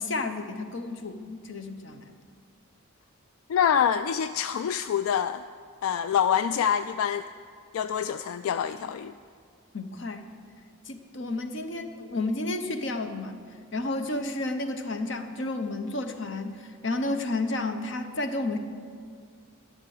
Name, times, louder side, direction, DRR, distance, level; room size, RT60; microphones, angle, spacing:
voice 1, 0.0-2.1 9.7-10.2 10.9-13.4 13.7-18.6, left 2 dB, 60° left, 7 dB, 0.9 m, -31 dB
voice 2, 3.5-5.4 5.8-7.2 7.7-9.1, left 8 dB, 85° left, 12 dB, 0.3 m, -26 dB
12.5 x 6.7 x 9.4 m, 2.1 s
head